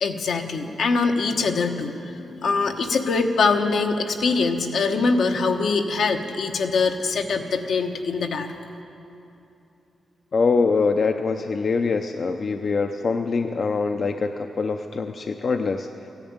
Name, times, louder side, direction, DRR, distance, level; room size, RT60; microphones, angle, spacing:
voice 1, 0.0-8.5, left 4 dB, 75° left, 4 dB, 1.1 m, -23 dB
voice 2, 10.3-15.9, left 4 dB, 50° left, 6 dB, 0.5 m, -24 dB
14.5 x 11.0 x 8.8 m, 2.8 s
wide cardioid pair, 115°, 0 cm